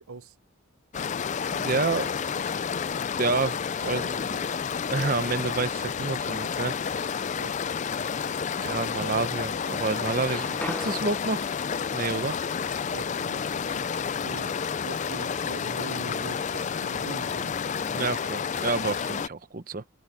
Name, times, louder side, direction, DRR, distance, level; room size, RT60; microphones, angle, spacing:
sound 1, 0.9-19.3, left 6 dB, 35° left, 0.3 m, -30 dB
voice 1, 1.5-2.1 3.2-4.4 4.9-6.7 8.6-11.5 11.9-12.4 17.8-19.8, right 3 dB, 40° right, 0.8 m, -29 dB
sound 2, 10.0-13.8, left 1 dB, 5° left, 1.0 m, -43 dB
voice 2, 12.9-14.6 14.8-17.6, right 3 dB, 70° right, 0.8 m, -42 dB
head